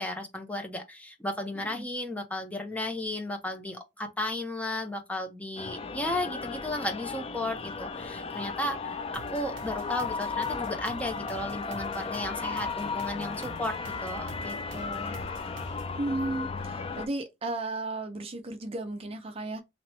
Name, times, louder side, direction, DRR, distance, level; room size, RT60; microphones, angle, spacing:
voice 1, 0.0-15.2, left 1 dB, 10° left, 0.8 m, -34 dB
sound 1, 5.6-17.1, left 4 dB, 30° left, 0.4 m, -35 dB
sound 2, 9.1-16.0, right 4 dB, 75° right, 0.6 m, -48 dB
voice 2, 16.0-19.6, right 2 dB, 30° right, 0.5 m, -34 dB
2.9 x 2.9 x 4.2 m
head